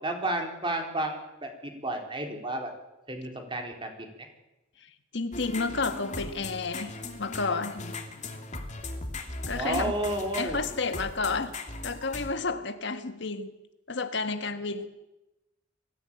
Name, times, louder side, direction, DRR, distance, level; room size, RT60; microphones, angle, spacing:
voice 1, 0.0-2.7 3.1-4.1 9.5-10.6, right 1 dB, 25° right, 3 dB, 3.7 m, -32 dB
voice 2, 4.8-7.9 9.5-9.9 10.4-11.5 11.8-13.5 13.9-15.0, left 4 dB, 65° left, 9 dB, 1.5 m, -31 dB
sound 1, 5.3-12.3, left 3 dB, 40° left, 2.7 m, -38 dB
23.0 x 15.0 x 8.8 m, 0.99 s
head